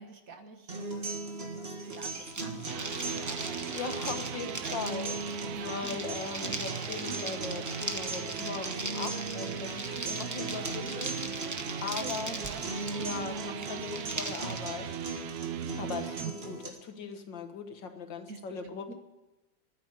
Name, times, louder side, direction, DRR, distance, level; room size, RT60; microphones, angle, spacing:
voice 1, 0.0-4.8 5.5-6.1 10.9-11.1 11.8-12.7 13.0-13.6 15.6-16.0 18.3-18.9, right 3 dB, 50° right, 6 dB, 1.6 m, -48 dB
sound 1, 0.7-16.7, right 3 dB, 35° right, 1.8 m, -38 dB
sound 2, 1.9-14.6, right 1 dB, 15° right, 0.6 m, -40 dB
sound 3, 2.5-16.3, right 11 dB, 70° right, 1.0 m, -41 dB
voice 2, 3.7-11.5 11.8-12.3 13.0-14.9 15.8-18.9, left 5 dB, 75° left, 6 dB, 2.1 m, -39 dB
11.5 x 9.6 x 9.8 m, 1.0 s
omnidirectional pair, 2.0 m